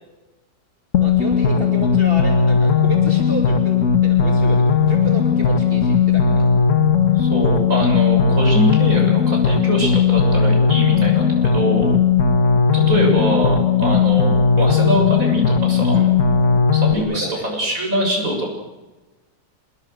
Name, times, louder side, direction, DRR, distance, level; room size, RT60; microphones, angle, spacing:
sound 1, 0.9-16.9, left 6 dB, 55° left, 1.8 m, -16 dB
voice 1, 1.0-6.6 15.9-16.1 16.9-17.4, right 2 dB, 35° right, 1 dB, 3.0 m, -31 dB
voice 2, 7.1-11.9 12.7-16.0 16.7-18.5, right 1 dB, 60° right, 1 dB, 7.9 m, -23 dB
28.0 x 20.0 x 6.7 m, 1.1 s
omnidirectional pair, 1.6 m